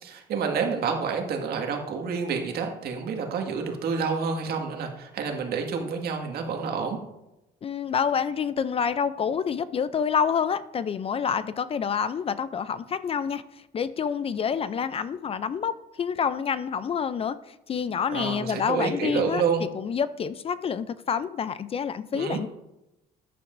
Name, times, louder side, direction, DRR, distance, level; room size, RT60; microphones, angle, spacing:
voice 1, 0.0-7.0 18.1-19.6 22.1-22.4, right 5 dB, 65° right, 3 dB, 1.9 m, -28 dB
voice 2, 7.6-13.4 13.7-22.5, left 7 dB, 35° left, 15 dB, 0.4 m, -28 dB
13.5 x 10.0 x 2.6 m, 0.93 s
cardioid pair, 110°, 17 cm